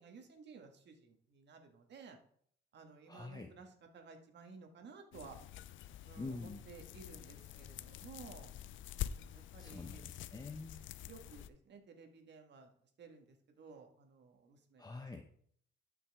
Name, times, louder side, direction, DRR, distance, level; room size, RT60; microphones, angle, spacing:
voice 1, 0.0-2.2 2.7-5.4 6.0-8.5 9.0-10.0 11.0-15.0, right 5 dB, 60° right, 4 dB, 1.7 m, -56 dB
voice 2, 3.1-3.5 6.2-6.6 9.6-10.8 14.8-15.2, left 3 dB, 20° left, 5 dB, 0.8 m, -46 dB
sound 1, 5.1-11.5, left 11 dB, 75° left, 0.5 m, -47 dB
12.5 x 5.9 x 3.6 m, 0.63 s
cardioid pair, 90°, 20 cm